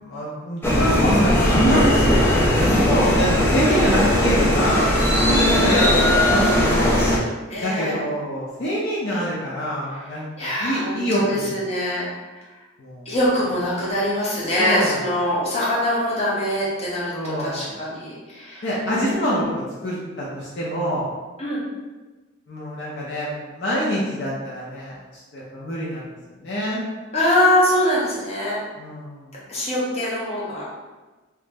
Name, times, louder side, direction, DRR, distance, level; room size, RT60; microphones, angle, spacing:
voice 1, 0.0-1.8 2.3-4.9 5.3-5.9 6.3-7.0 7.6-11.5 12.8-13.1 14.6-15.0 17.1-17.8 18.6-21.0 22.5-26.9 28.8-29.3, equal, 60° left, -6 dB, 0.6 m, -25 dB
sound 1, 0.6-7.2, left 1 dB, 10° left, 0.5 m, -18 dB
voice 2, 5.4-5.9 7.5-8.0 9.9-10.0 10.4-12.1 13.0-19.4 21.4-21.6 27.1-28.6 29.5-30.6, left 1 dB, 30° left, -7 dB, 0.9 m, -23 dB
3.0 x 2.0 x 3.5 m, 1.2 s
head